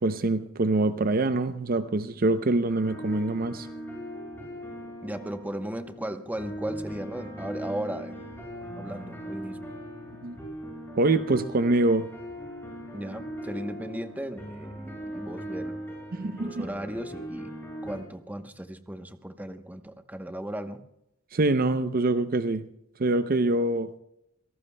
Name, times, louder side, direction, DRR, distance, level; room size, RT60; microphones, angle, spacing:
voice 1, 0.0-3.7 10.2-10.4 11.0-12.1 16.1-16.7 21.3-22.6 23.0-23.9, right 2 dB, 45° right, 11 dB, 0.6 m, -25 dB
sound 1, 2.7-18.0, equal, 10° left, 6.9 m, -39 dB
voice 2, 5.0-8.2 8.7-9.6 12.9-15.8 16.5-17.5 17.8-20.8, right 1 dB, 10° right, 8 dB, 0.9 m, -36 dB
27.0 x 18.0 x 2.2 m, 0.81 s
head